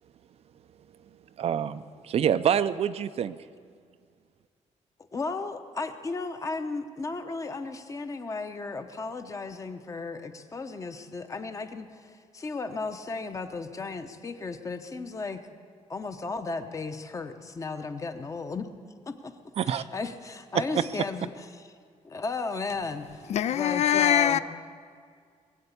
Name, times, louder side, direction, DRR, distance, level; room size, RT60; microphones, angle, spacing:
voice 1, 1.4-3.4 19.6-19.8 20.5-20.9, right 9 dB, 55° right, 0.5 m, -26 dB
voice 2, 5.1-15.4 15.9-18.7 19.1-19.3 19.7-21.4 22.0-23.2 23.5-24.4, left 3 dB, 25° left, 0.8 m, -35 dB
voice 3, 23.3-24.4, left 10 dB, 60° left, 0.4 m, -23 dB
21.0 x 7.8 x 8.3 m
wide cardioid pair, 160°, 13 cm